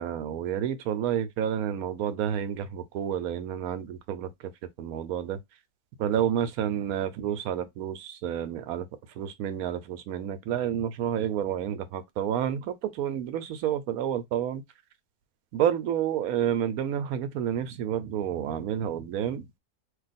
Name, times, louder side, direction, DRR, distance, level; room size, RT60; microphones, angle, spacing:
voice 1, 0.0-4.5 4.8-5.4 6.0-8.8 9.2-14.6 15.5-19.5, right 9 dB, 85° right, 1.1 m, -29 dB
2.6 x 2.3 x 4.0 m
omnidirectional pair, 1.5 m